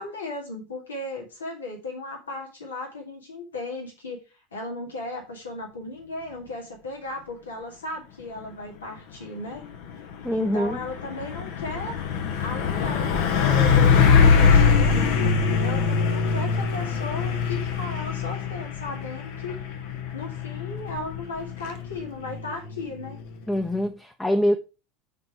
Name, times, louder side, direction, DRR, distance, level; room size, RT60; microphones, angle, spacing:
voice 1, 0.0-4.2 4.5-9.6 10.3-12.0 12.4-15.1 15.6-19.6 20.1-23.2, left 2 dB, 75° left, 2.1 m, -36 dB
Truck, 9.6-23.9, left 6 dB, 60° left, 1.1 m, -23 dB
voice 2, 10.2-10.8 23.5-24.6, equal, 10° left, 0.8 m, -24 dB
7.2 x 4.3 x 4.7 m
figure-of-eight pair, 75°, 0 cm